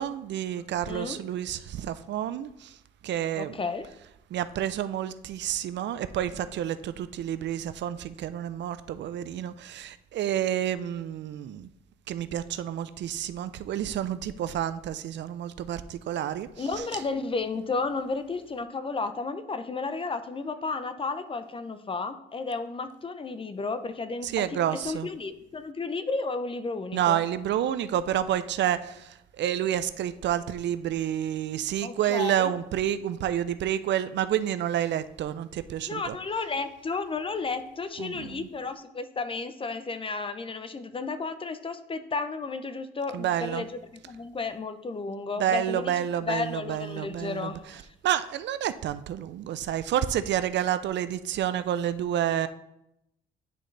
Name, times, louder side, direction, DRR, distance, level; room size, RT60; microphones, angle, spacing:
voice 1, 0.0-2.7 3.0-3.6 4.3-11.7 12.1-16.5 16.8-16.9 24.2-25.1 26.9-36.2 38.0-38.5 43.1-43.6 45.4-47.5 48.0-52.5, right 11 dB, 65° right, 13 dB, 0.4 m, -29 dB
voice 2, 0.5-1.2 3.4-3.9 16.6-27.2 31.8-32.5 35.9-43.8 44.1-47.9, left 4 dB, 25° left, 11 dB, 0.5 m, -33 dB
10.0 x 3.8 x 3.2 m, 0.83 s
cardioid pair, 90°, 20 cm